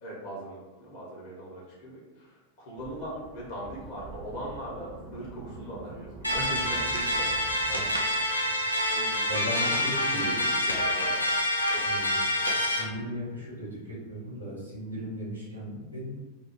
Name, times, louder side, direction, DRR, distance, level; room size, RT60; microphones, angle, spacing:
voice 1, 0.0-7.4 8.6-9.3 9.5-11.3 11.7-12.1, right 1 dB, 45° left, -5 dB, 1.1 m, -40 dB
sound 1, 2.8-8.0, right 2 dB, 15° right, 0.5 m, -45 dB
sound 2, 6.2-12.8, left 1 dB, 85° left, 0.4 m, -27 dB
voice 2, 7.7-8.1 9.3-10.4 11.9-12.2 12.7-16.2, equal, 80° right, -4 dB, 0.9 m, -37 dB
2.7 x 2.0 x 2.9 m, 1.2 s
figure-of-eight pair, 90°, 0 cm